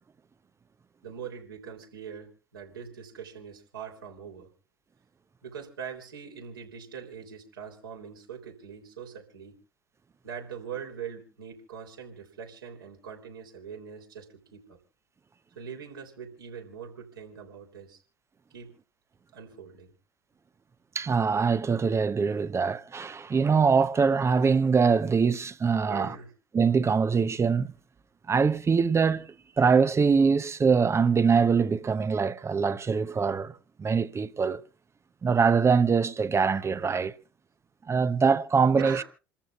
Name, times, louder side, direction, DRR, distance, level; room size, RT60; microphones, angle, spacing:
voice 1, 1.0-4.5 5.4-9.5 10.2-14.8 15.6-18.0 18.5-18.7 19.3-19.9 25.9-26.3 38.8-39.0, right 7 dB, 75° right, 3.5 m, -42 dB
voice 2, 20.9-26.1 26.5-27.7 28.3-34.6 35.2-37.1 37.9-39.0, right 5 dB, 25° right, 0.8 m, -23 dB
28.5 x 14.0 x 2.4 m
figure-of-eight pair, 65°, 12 cm